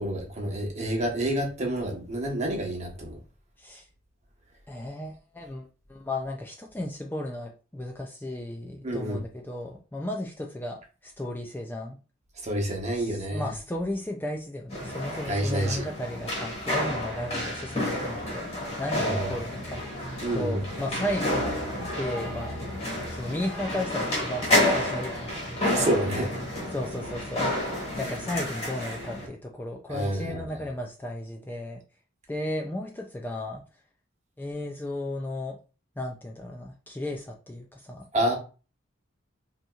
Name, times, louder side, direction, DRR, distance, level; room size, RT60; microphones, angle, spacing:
voice 1, 0.0-3.2 8.8-9.2 12.4-13.5 15.3-15.9 18.9-19.3 20.2-20.6 25.6-26.4 29.9-30.6 38.1-38.4, right 1 dB, 35° right, 1.1 m, -28 dB
voice 2, 4.7-12.0 12.9-18.5 18.8-19.8 20.3-21.4 22.0-22.6 23.1-25.5 26.7-27.5 28.0-31.8 32.3-33.6 34.4-35.6 36.0-38.1, left 1 dB, 10° left, 0.4 m, -34 dB
sound 1, 14.7-29.3, left 1 dB, 30° left, 1.7 m, -30 dB
5.3 x 2.8 x 2.4 m
head